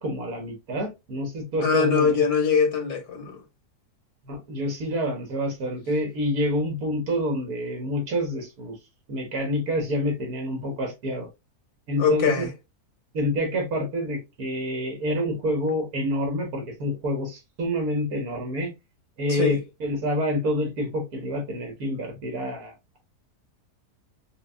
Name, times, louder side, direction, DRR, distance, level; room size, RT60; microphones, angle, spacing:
voice 1, 0.0-2.2 4.2-8.8 9.1-11.3 11.9-12.5 13.1-18.7 19.2-23.0, equal, 70° right, 2.0 m, -28 dB
voice 2, 1.6-3.4 12.0-12.5 19.3-19.6, left 5 dB, 75° left, 1.5 m, -22 dB
5.0 x 2.4 x 2.5 m
omnidirectional pair, 1.6 m